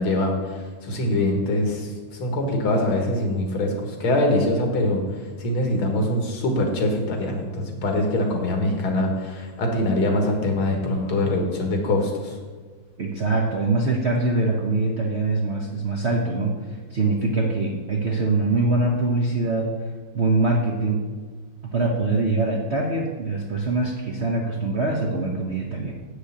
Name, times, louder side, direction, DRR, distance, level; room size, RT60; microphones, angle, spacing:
voice 1, 0.0-1.9 2.2-5.0 5.4-12.4, left 1 dB, 80° left, 2 dB, 2.4 m, -23 dB
voice 2, 13.0-19.7 20.1-21.0 21.7-25.9, right 3 dB, 50° right, 0 dB, 0.8 m, -23 dB
8.4 x 6.6 x 7.2 m, 1.4 s
omnidirectional pair, 2.3 m